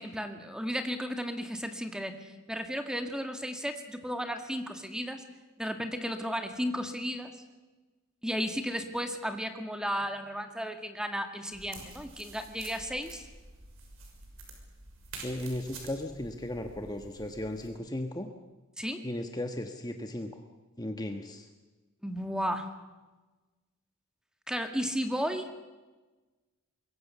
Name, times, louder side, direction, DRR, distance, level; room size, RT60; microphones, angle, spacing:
voice 1, 0.0-5.2 5.6-7.3 8.2-13.3 18.8-19.0 22.0-22.7 24.5-25.5, equal, 5° right, 7 dB, 2.0 m, -34 dB
sound 1, 11.5-17.7, right 3 dB, 75° right, 6.3 m, -48 dB
voice 2, 15.2-18.3 19.0-20.4 20.8-21.5, left 1 dB, 20° left, 5 dB, 1.4 m, -36 dB
25.5 x 22.5 x 6.9 m, 1.2 s
head